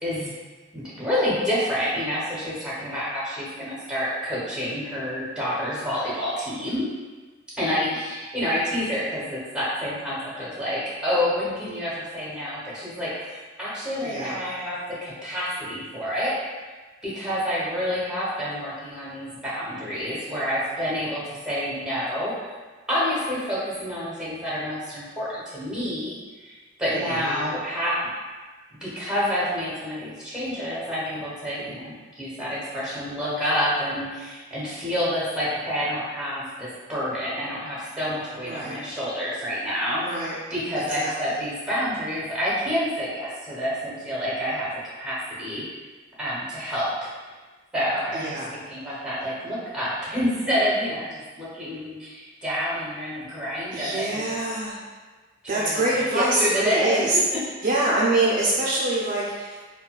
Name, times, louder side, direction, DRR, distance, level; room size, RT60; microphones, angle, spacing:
voice 1, 0.7-6.9 7.6-16.3 17.0-22.3 22.9-28.0 28.7-44.7 45.0-45.7 46.2-47.1 47.7-54.4 55.5-55.8 56.1-57.0, equal, 5° right, -8 dB, 0.9 m, -28 dB
voice 2, 14.0-14.4 26.9-27.5 38.4-38.8 40.0-40.4 40.8-41.4 48.1-48.5 53.7-54.8 55.5-57.2 57.6-59.6, right 2 dB, 45° right, -5 dB, 0.4 m, -25 dB
3.9 x 2.2 x 2.2 m, 1.3 s
head